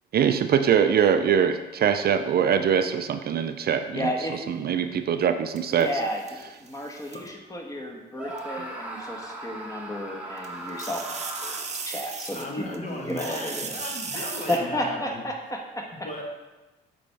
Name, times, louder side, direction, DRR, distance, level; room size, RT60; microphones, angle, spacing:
voice 1, 0.1-4.1 4.5-5.9, right 8 dB, 50° right, 9 dB, 0.4 m, -23 dB
voice 2, 3.9-4.4 5.7-6.2 6.6-13.7 14.1-16.1, equal, 15° left, 1 dB, 1.2 m, -32 dB
sound 1, 5.6-7.3 8.4-8.5 10.4-12.8 13.1-14.6, right 5 dB, 35° right, 0.8 m, -37 dB
Screaming, 8.1-11.9, right 1 dB, 5° right, 1.1 m, -38 dB
voice 3, 12.3-15.2 16.0-16.2, left 2 dB, 40° left, 0 dB, 1.4 m, -35 dB
8.3 x 4.3 x 3.4 m, 1.2 s
cardioid pair, 90°, 20 cm